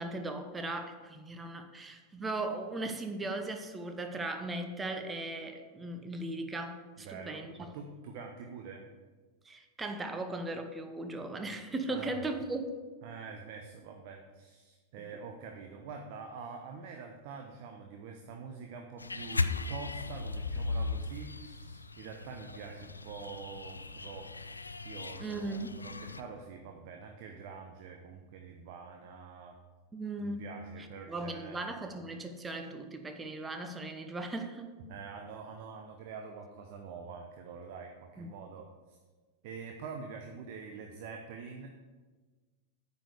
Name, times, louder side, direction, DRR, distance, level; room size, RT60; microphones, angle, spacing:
voice 1, 0.0-7.7 9.4-12.7 25.2-25.8 29.9-30.5 31.1-34.7 38.2-38.3, right 2 dB, 15° right, 7 dB, 0.9 m, -38 dB
voice 2, 7.0-8.9 11.9-12.3 13.0-24.4 24.8-29.6 30.2-31.6 34.9-39.0 39.4-41.7, right 5 dB, 50° right, 3 dB, 0.8 m, -46 dB
sound 1, 19.0-26.2, left 3 dB, 80° left, 0.4 m, -37 dB
8.8 x 5.3 x 6.6 m, 1.3 s
figure-of-eight pair, 90°, 0 cm